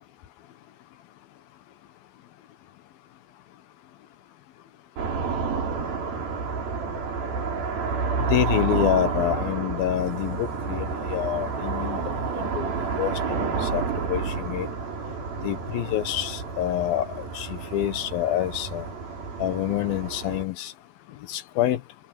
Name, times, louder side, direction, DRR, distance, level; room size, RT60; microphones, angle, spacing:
sound 1, 5.0-20.4, right 5 dB, 85° right, 6.8 m, -30 dB
voice 1, 8.3-12.0 12.4-12.7 13.0-13.8 14.1-14.7 15.4-18.9 19.4-20.7 21.3-21.8, left 12 dB, 90° left, 3.1 m, -27 dB
omnidirectional pair, 4.1 m